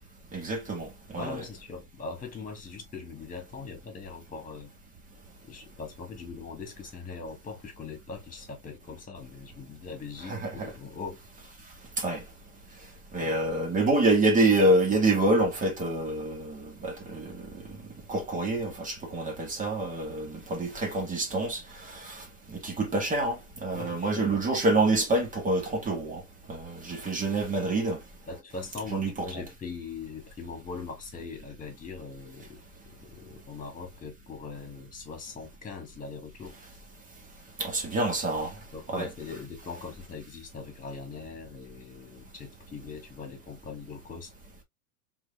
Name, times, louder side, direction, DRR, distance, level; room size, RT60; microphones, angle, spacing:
voice 1, 0.3-1.4 10.2-10.7 12.0-12.2 13.1-17.4 18.1-21.6 21.9-22.2 22.5-26.2 26.5-28.0 28.9-29.4 37.6-38.5 38.9-39.1, right 2 dB, 15° right, 1.8 m, -27 dB
voice 2, 1.2-4.7 5.4-11.2 13.2-13.4 23.7-24.4 28.3-32.6 32.9-36.6 38.7-44.3, left 4 dB, 15° left, 2.5 m, -41 dB
4.5 x 4.0 x 2.4 m
hypercardioid pair, 115°, 47 cm